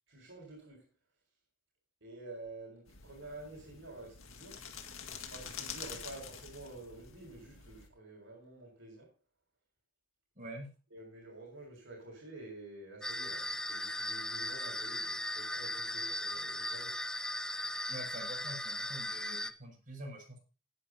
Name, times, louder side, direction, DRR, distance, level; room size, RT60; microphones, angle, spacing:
voice 1, 0.1-0.8 2.0-4.6 5.3-9.1 10.9-17.0, right 2 dB, 65° right, 6.4 m, -49 dB
sound 1, 2.9-7.9, left 7 dB, 80° left, 1.9 m, -47 dB
voice 2, 10.4-10.7 17.9-20.4, right 1 dB, 40° right, 7.3 m, -46 dB
sound 2, 13.0-19.5, left 1 dB, 5° left, 0.6 m, -38 dB
18.0 x 10.0 x 2.8 m
head